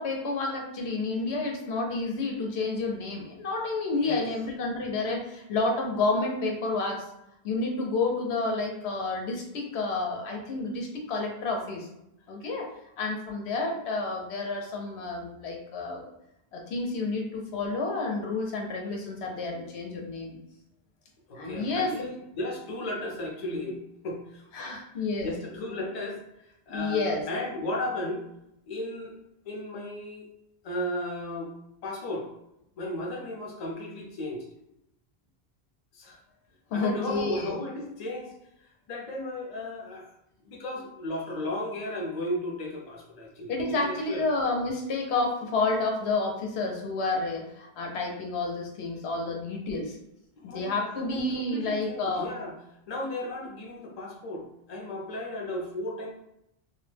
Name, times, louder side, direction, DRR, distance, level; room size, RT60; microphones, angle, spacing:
voice 1, 0.0-7.0 7.4-11.9 12.3-12.7 13.0-16.1 16.5-20.4 21.4-22.1 24.5-25.3 26.7-27.2 36.7-37.5 43.5-50.0 50.4-52.3, left 3 dB, 90° left, 1 dB, 0.9 m, -30 dB
voice 2, 21.3-24.8 25.2-28.2 28.7-29.2 29.5-30.3 30.6-31.5 31.8-32.3 32.8-34.5 35.9-36.2 36.7-40.1 40.4-44.3 50.4-52.5 52.9-56.1, left 1 dB, 45° left, -1 dB, 0.6 m, -35 dB
2.3 x 2.1 x 3.2 m, 0.82 s
omnidirectional pair, 1.1 m